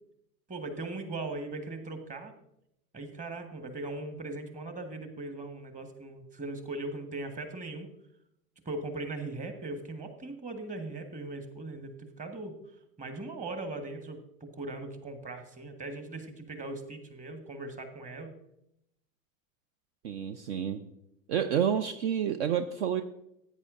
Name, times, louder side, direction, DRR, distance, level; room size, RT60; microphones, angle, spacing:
voice 1, 0.5-2.3 2.9-7.9 8.6-12.5 13.0-18.3, right 2 dB, 20° right, 7 dB, 1.4 m, -39 dB
voice 2, 20.0-20.8 21.3-23.0, right 8 dB, 55° right, 10 dB, 0.7 m, -29 dB
16.0 x 9.0 x 2.5 m, 0.81 s
figure-of-eight pair, 80°, 41 cm